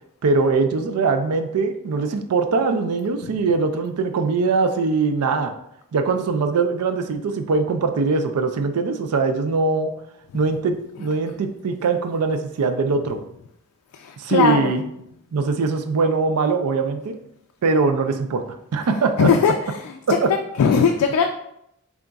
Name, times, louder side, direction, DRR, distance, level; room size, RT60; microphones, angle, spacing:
voice 1, 0.2-5.6 5.9-9.9 10.3-13.2 14.2-14.8 15.3-17.2 17.6-19.5 20.1-20.3, right 4 dB, 85° right, 7 dB, 0.4 m, -22 dB
voice 2, 13.9-14.7 19.2-19.5 19.8-20.0 20.6-21.3, left 6 dB, 85° left, 4 dB, 0.3 m, -19 dB
3.9 x 3.5 x 2.3 m, 0.78 s
head